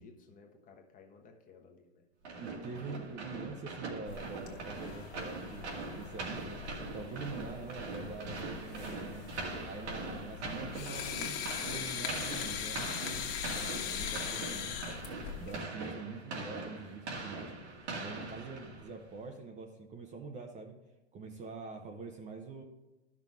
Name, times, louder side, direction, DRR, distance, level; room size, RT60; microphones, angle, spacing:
voice 1, 0.0-2.0, left 4 dB, 25° left, 3 dB, 1.2 m, -57 dB
sound 1, 2.2-19.0, right 3 dB, 90° right, 2.4 m, -42 dB
voice 2, 2.4-6.6 6.9-9.2 9.6-11.4 11.6-14.9 15.4-17.5 18.0-20.7 21.1-22.6, right 4 dB, 20° right, 3 dB, 0.7 m, -45 dB
sound 2, 4.1-15.6, left 8 dB, 55° left, 1.5 m, -41 dB
12.0 x 6.0 x 3.5 m, 1.1 s
hypercardioid pair, 135°, 33 cm